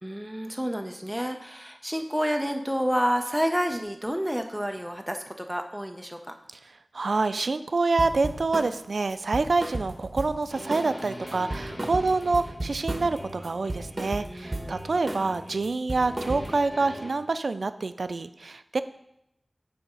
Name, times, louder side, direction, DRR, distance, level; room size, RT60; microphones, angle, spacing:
voice 1, 0.0-6.3 14.2-14.7, equal, 5° right, 4 dB, 0.5 m, -29 dB
voice 2, 6.9-18.8, right 3 dB, 85° right, 12 dB, 0.3 m, -27 dB
sound 1, 8.0-8.7 9.1-10.4 10.7-11.0 11.3-13.2 13.4-14.7 15.1-15.3 15.6-16.7, right 1 dB, 35° right, 1.1 m, -34 dB
sound 2, 10.5-14.2 14.4-15.7 16.0-17.1, equal, 20° left, 1.3 m, -42 dB
8.3 x 3.4 x 5.5 m, 0.82 s
wide cardioid pair, 70°, 0 cm